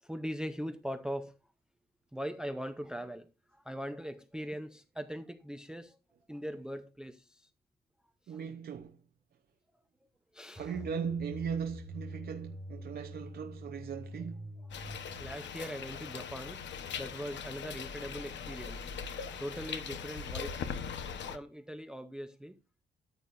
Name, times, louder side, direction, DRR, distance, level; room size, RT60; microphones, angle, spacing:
voice 1, 0.0-1.4 2.1-6.0 6.3-7.5 8.3-8.4 10.3-10.8 14.8-14.9 15.2-16.7 17.0-18.9 19.4-20.7 21.3-22.6, equal, 5° right, 0.5 m, -41 dB
voice 2, 8.3-9.0 10.5-14.5, right 7 dB, 55° right, 0.7 m, -38 dB
sound 1, 10.6-19.4, left 1 dB, 15° left, 2.4 m, -48 dB
sound 2, 14.7-21.4, left 6 dB, 75° left, 1.0 m, -40 dB
13.5 x 8.5 x 2.5 m
wide cardioid pair, 175°, 19 cm